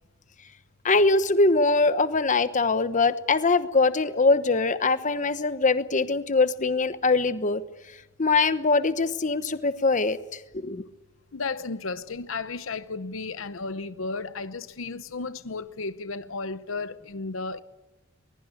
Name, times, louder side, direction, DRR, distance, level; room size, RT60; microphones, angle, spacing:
voice 1, 0.8-7.6 8.2-10.2 10.5-10.8, left 3 dB, 40° left, 1.1 m, -22 dB
voice 2, 11.3-17.6, left 3 dB, 70° left, 0.8 m, -34 dB
22.5 x 21.5 x 9.6 m
head